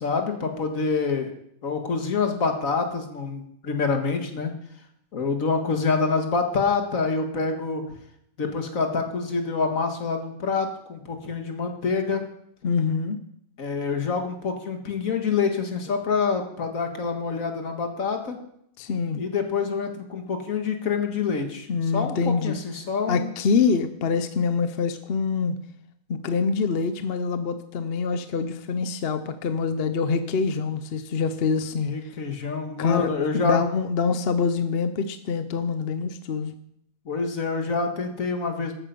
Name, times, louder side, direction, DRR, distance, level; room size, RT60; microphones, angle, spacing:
voice 1, 0.0-1.3 1.6-4.5 5.1-7.8 8.4-12.3 13.6-18.4 19.2-23.3 31.8-33.6 37.1-38.8, left 4 dB, 75° left, 5 dB, 2.0 m, -26 dB
voice 2, 12.6-13.2 18.8-19.2 21.7-22.6 23.1-25.5 26.1-31.9 32.8-36.5, left 5 dB, 50° left, 10 dB, 0.9 m, -25 dB
13.5 x 8.9 x 5.3 m, 0.73 s
omnidirectional pair, 1.5 m